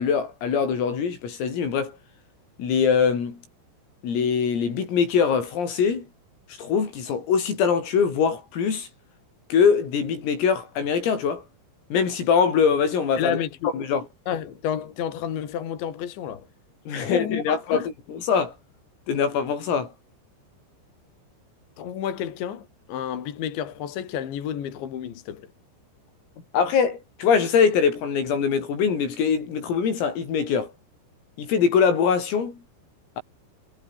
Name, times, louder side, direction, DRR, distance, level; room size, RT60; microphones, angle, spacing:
voice 1, 0.0-1.9 2.6-3.4 4.0-6.1 6.6-8.9 9.5-11.4 11.9-13.4 13.7-14.0 16.9-18.5 19.1-19.9 26.5-30.7 31.4-32.6, left 6 dB, 80° left, 8.5 m, -23 dB
voice 2, 13.2-13.7 14.3-16.5 17.0-17.9 21.8-25.5, left 9 dB, 65° left, 4.9 m, -30 dB
omnidirectional pair, 5.9 m